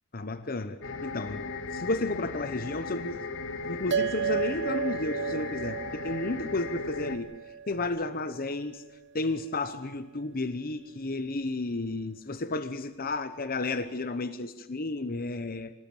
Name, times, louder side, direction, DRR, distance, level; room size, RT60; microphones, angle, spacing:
voice 1, 0.1-1.4 1.7-3.2 3.6-7.3 7.7-8.8 9.1-15.7, left 2 dB, 45° left, 12 dB, 1.0 m, -32 dB
sound 1, 0.8-7.2, left 3 dB, 60° left, 2.1 m, -37 dB
sound 2, 3.9-8.6, right 7 dB, 55° right, 0.7 m, -34 dB
26.0 x 18.5 x 8.8 m, 1.1 s
head